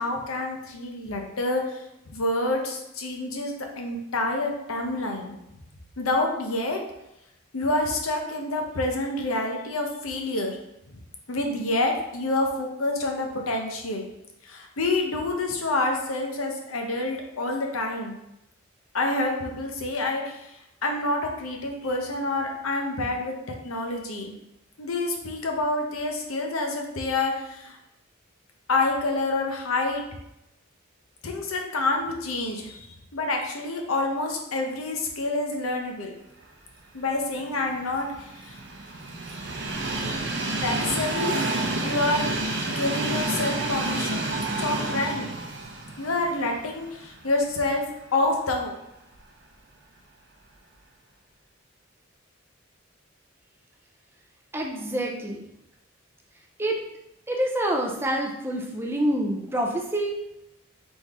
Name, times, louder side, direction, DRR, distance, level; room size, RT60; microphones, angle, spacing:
voice 1, 0.0-1.8 2.1-5.4 6.0-6.8 7.5-10.6 11.3-14.0 14.5-18.2 18.9-20.5 20.8-23.4 23.6-24.3 24.8-27.8 28.7-30.0 31.2-32.9 33.1-36.1 36.9-38.1 38.4-38.6 40.6-41.4 41.8-42.2 42.7-45.3 46.0-47.8 48.1-48.7, left 2 dB, 85° left, 2 dB, 0.8 m, -27 dB
Train, 37.4-47.5 48.0-48.1 49.2-49.3, right 2 dB, 55° right, 0.7 m, -29 dB
voice 2, 54.5-55.4 56.6-56.8 57.3-60.2, right 1 dB, 10° right, 0 dB, 0.5 m, -27 dB
4.1 x 3.5 x 3.6 m, 0.85 s
head